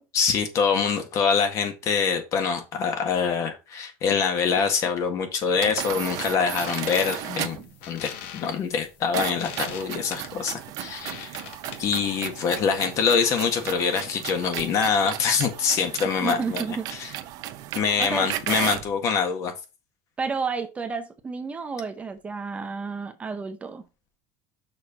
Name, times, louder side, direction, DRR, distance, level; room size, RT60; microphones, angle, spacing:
voice 1, 0.1-11.4 11.8-16.6 16.9-17.1 17.8-19.5, left 6 dB, 45° left, 1.7 m, -25 dB
sound 1, 5.5-7.7 9.1-18.9, right 13 dB, 55° right, 0.8 m, -35 dB
sound 2, 6.4-12.1, left 9 dB, 80° left, 1.2 m, -41 dB
voice 2, 16.2-17.2 18.0-18.3 20.2-23.8, right 5 dB, 15° right, 0.7 m, -31 dB
6.4 x 4.5 x 5.0 m
cardioid pair, 145°, 8 cm